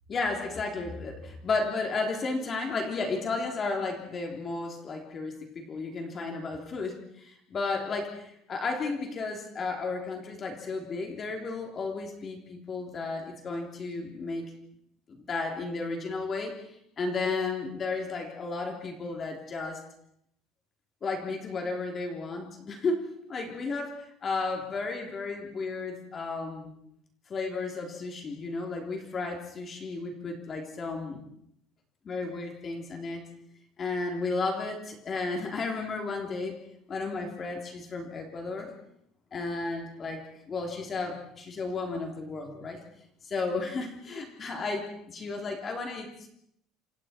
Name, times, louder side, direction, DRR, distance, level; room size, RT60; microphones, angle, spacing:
voice 1, 0.1-1.1 1.4-14.5 15.1-19.8 21.0-26.7 27.3-31.2 32.0-33.2 33.8-36.6 36.9-38.7 39.3-42.8 43.2-46.3, left 3 dB, 30° left, 2 dB, 3.4 m, -33 dB
28.5 x 27.5 x 4.5 m, 0.73 s
cardioid pair, 160°, 0 cm